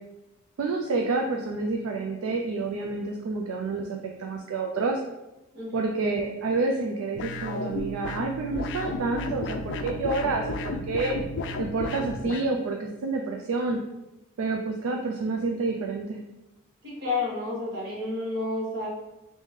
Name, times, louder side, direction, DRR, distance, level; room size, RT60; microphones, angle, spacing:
voice 1, 0.6-5.0 5.7-11.1 11.6-13.8 14.4-16.2, right 3 dB, 75° right, 1 dB, 0.4 m, -28 dB
voice 2, 5.5-6.0 16.8-18.9, left 3 dB, 60° right, -6 dB, 1.5 m, -31 dB
sound 1, 7.2-12.5, left 2 dB, 55° left, 0.3 m, -33 dB
3.5 x 2.7 x 3.2 m, 0.99 s
head